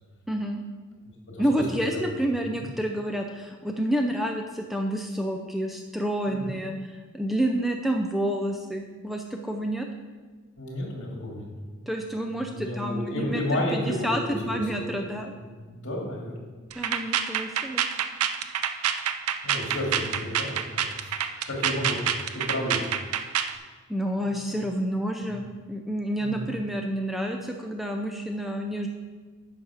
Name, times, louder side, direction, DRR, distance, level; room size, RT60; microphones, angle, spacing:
voice 1, 0.3-0.6 1.4-6.7 7.1-9.9 11.9-15.3 16.7-17.8 23.9-28.9, right 1 dB, ahead, 3 dB, 0.5 m, -29 dB
voice 2, 1.3-2.0 2.5-2.7 6.3-6.5 10.6-11.9 12.3-15.1 15.4-16.5 19.4-22.8 24.2-24.6 25.2-25.4 26.2-26.5, left 1 dB, 55° left, -1 dB, 2.3 m, -32 dB
sound 1, 16.7-23.6, right 9 dB, 75° right, 0.6 m, -27 dB
10.5 x 6.4 x 4.9 m, 1.4 s
head